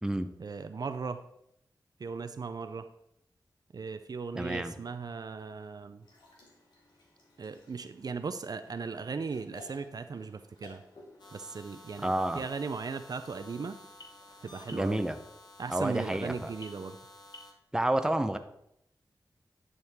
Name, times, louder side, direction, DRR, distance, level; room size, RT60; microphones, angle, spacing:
voice 1, 0.4-1.2 2.0-2.9 3.7-6.0 7.4-10.8 11.3-13.8 14.4-15.0 15.6-17.0, right 5 dB, 60° right, 10 dB, 0.5 m, -37 dB
voice 2, 4.3-4.7 12.0-12.4 14.7-15.2 15.7-16.5 17.7-18.4, right 1 dB, 10° right, 8 dB, 0.7 m, -29 dB
sound 1, 6.0-14.8, left 2 dB, 85° left, 2.7 m, -58 dB
sound 2, 11.2-17.5, left 2 dB, 70° left, 1.3 m, -52 dB
10.5 x 6.4 x 3.6 m, 0.78 s
wide cardioid pair, 80°, 8 cm